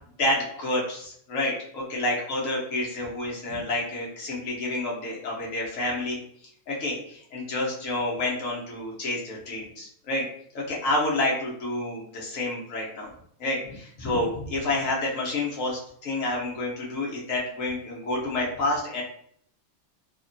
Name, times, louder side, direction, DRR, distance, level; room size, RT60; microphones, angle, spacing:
voice 1, 0.2-6.2 6.7-10.2 10.5-13.1 13.4-19.0, left 2 dB, 70° left, -3 dB, 1.2 m, -29 dB
3.5 x 2.1 x 2.5 m, 0.66 s
omnidirectional pair, 1.5 m